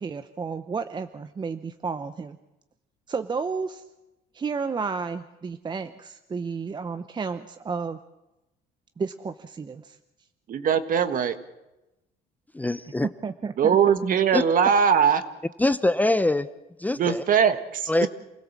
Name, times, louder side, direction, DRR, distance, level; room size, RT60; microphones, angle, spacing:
voice 1, 0.0-2.4 3.1-3.8 4.3-8.0 9.0-10.0 13.2-13.5, right 5 dB, 25° right, 10 dB, 0.8 m, -32 dB
voice 2, 10.5-11.3 13.6-15.2 17.0-18.1, right 7 dB, 55° right, 10 dB, 1.5 m, -21 dB
voice 3, 12.5-13.1 14.3-14.4 15.6-16.5 16.8-17.2 17.9-18.1, left 2 dB, 10° left, 13 dB, 0.7 m, -23 dB
28.0 x 16.5 x 7.4 m, 0.98 s
cardioid pair, 110°, 17 cm